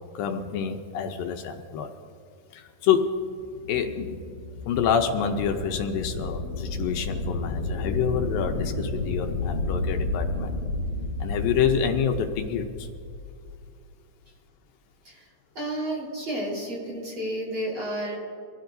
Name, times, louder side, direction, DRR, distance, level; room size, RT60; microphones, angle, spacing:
voice 1, 0.1-1.9 2.5-3.1 3.7-4.2 4.7-10.6 11.2-12.9, left 7 dB, 80° left, 5 dB, 2.4 m, -27 dB
sound 1, 3.3-13.4, left 2 dB, 50° left, 2.9 m, -31 dB
voice 2, 15.0-18.2, right 1 dB, 35° right, -5 dB, 4.4 m, -32 dB
24.5 x 15.0 x 2.6 m, 2.4 s
omnidirectional pair, 4.2 m